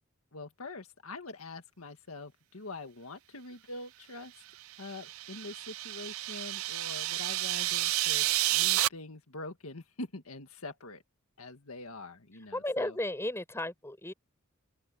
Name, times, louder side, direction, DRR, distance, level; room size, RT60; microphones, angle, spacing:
voice 1, 0.3-4.3 4.8-11.0 11.4-13.0, left 2 dB, 80° left, 1.9 m, -44 dB
sound 1, 4.7-8.9, right 16 dB, 70° right, 0.4 m, -30 dB
voice 2, 12.5-14.1, left 1 dB, 10° left, 6.0 m, -34 dB
open air
head